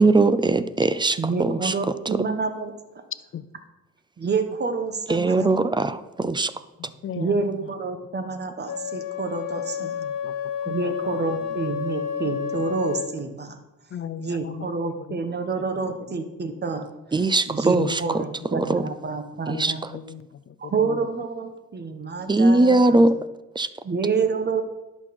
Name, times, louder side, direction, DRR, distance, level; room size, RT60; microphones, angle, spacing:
voice 1, 0.0-2.2 5.1-6.5 17.1-18.2 18.5-18.9 19.5-19.9 22.3-23.2 23.5-23.7, right 2 dB, 15° right, 14 dB, 0.4 m, -20 dB
voice 2, 1.2-2.7 4.2-5.5 7.2-9.9 10.7-13.5 14.2-16.9 17.5-19.8 20.6-22.8 23.8-24.6, right 4 dB, 35° right, 7 dB, 1.3 m, -28 dB
voice 3, 7.0-7.7 9.8-10.3 10.6-11.6 13.9-14.7 15.0-15.2 15.6-16.2 17.6-18.3 19.5-21.1, left 9 dB, 45° left, 14 dB, 0.6 m, -37 dB
Wind instrument woodwind instrument, 8.7-13.2, left 8 dB, 60° left, 1.3 m, -30 dB
11.0 x 5.9 x 4.4 m, 1.0 s
cardioid pair, 90°, 30 cm